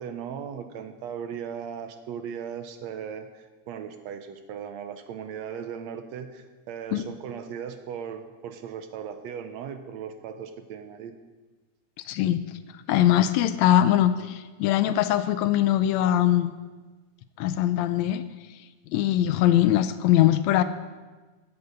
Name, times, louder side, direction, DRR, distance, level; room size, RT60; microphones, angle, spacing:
voice 1, 0.0-11.2, right 7 dB, 75° right, 8 dB, 1.8 m, -37 dB
voice 2, 12.1-12.6 12.9-16.5 17.4-18.2 18.9-20.6, left 12 dB, 80° left, 12 dB, 1.8 m, -22 dB
15.5 x 8.3 x 5.1 m, 1.3 s
omnidirectional pair, 3.4 m